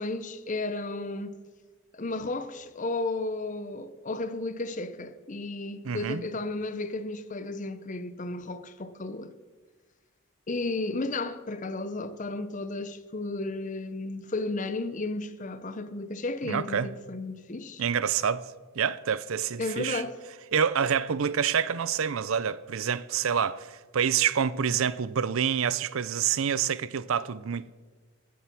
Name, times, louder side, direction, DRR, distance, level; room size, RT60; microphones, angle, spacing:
voice 1, 0.0-1.4 1.9-9.3 10.5-17.8 19.6-20.2, left 2 dB, 35° left, 0.7 m, -33 dB
voice 2, 5.8-6.3 16.4-16.9 17.8-18.4 18.8-20.0 20.5-27.7, right 7 dB, 70° right, 0.5 m, -27 dB
15.0 x 7.4 x 5.9 m
head